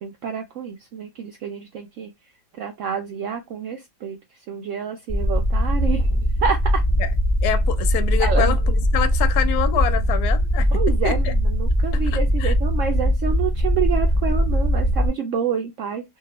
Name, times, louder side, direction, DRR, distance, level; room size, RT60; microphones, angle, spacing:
voice 1, 0.0-2.1 2.6-4.2 4.5-6.8 8.2-8.6 10.7-16.0, right 7 dB, 80° right, 0.6 m, -28 dB
sound 1, 5.1-15.1, equal, 20° left, 0.8 m, -20 dB
voice 2, 7.4-10.7 11.0-11.3 11.9-12.5, left 11 dB, 75° left, 1.0 m, -26 dB
2.8 x 2.4 x 2.9 m
omnidirectional pair, 1.9 m